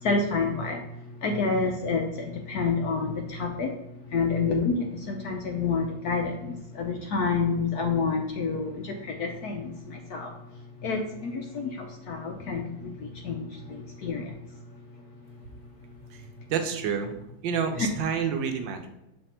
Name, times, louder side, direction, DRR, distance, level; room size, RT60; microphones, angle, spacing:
voice 1, 0.0-3.7 4.1-10.3 10.8-14.4 17.8-17.9, left 4 dB, 65° left, 2 dB, 1.0 m, -29 dB
voice 2, 16.1-17.1 17.4-18.9, right 7 dB, 70° right, 5 dB, 1.3 m, -29 dB
6.6 x 3.3 x 4.3 m, 0.87 s
omnidirectional pair, 2.2 m